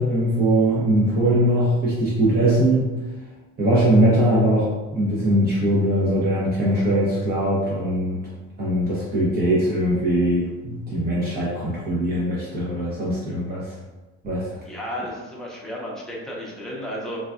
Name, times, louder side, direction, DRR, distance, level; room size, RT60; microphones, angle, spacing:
voice 1, 0.0-2.9 3.6-8.2 8.6-13.7 14.2-14.5, right 1 dB, 30° right, -8 dB, 0.8 m, -21 dB
voice 2, 14.6-17.2, equal, ahead, -5 dB, 0.7 m, -33 dB
3.9 x 2.3 x 2.4 m, 1.2 s
cardioid pair, 135°, 30 cm